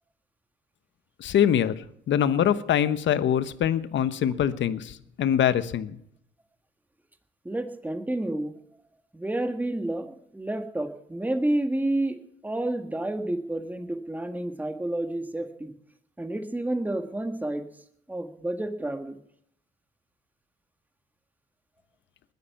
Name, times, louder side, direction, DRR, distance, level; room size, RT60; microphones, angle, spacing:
voice 1, 1.2-6.0, left 9 dB, 70° left, 14 dB, 1.0 m, -24 dB
voice 2, 7.4-8.5 9.1-12.2 12.4-15.7 16.2-17.6 18.1-19.2, right 1 dB, 10° right, 7 dB, 1.6 m, -30 dB
20.5 x 9.6 x 5.8 m, 0.70 s
cardioid pair, 90°, 20 cm